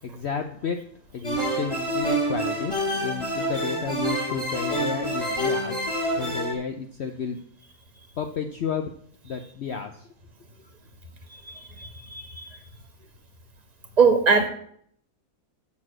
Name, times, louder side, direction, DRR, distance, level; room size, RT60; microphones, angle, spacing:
voice 1, 0.0-0.8 1.1-5.8 6.2-7.4 8.2-8.9 9.2-10.1, left 6 dB, 55° left, 6 dB, 0.8 m, -32 dB
sound 1, 1.2-6.5, right 1 dB, 20° left, 2.5 m, -27 dB
voice 2, 11.3-12.5 14.0-14.5, right 5 dB, 30° right, 5 dB, 1.4 m, -22 dB
7.3 x 6.3 x 7.4 m, 0.63 s
omnidirectional pair, 1.6 m